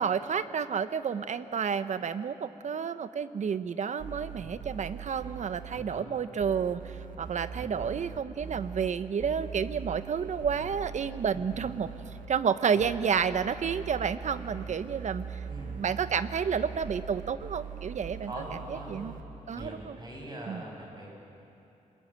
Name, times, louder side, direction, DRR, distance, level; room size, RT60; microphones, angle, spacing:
voice 1, 0.0-11.9 12.3-15.4 15.8-18.3 18.9-19.1 19.5-20.0 20.5-20.6, right 7 dB, 65° right, 12 dB, 0.9 m, -30 dB
sound 1, 4.0-5.8 6.4-8.9 9.2-12.3 12.8-19.2 19.6-19.7, right 7 dB, 85° right, 1.9 m, -41 dB
voice 2, 5.7-6.1 7.6-7.9 10.5-10.7 11.3-11.5 11.8-11.9 12.7-12.9 14.5-14.8 15.5-15.8 18.2-19.0 19.5-21.1, right 1 dB, 30° right, -1 dB, 6.9 m, -43 dB
29.0 x 20.5 x 9.0 m, 3.0 s
wide cardioid pair, 120°, 13 cm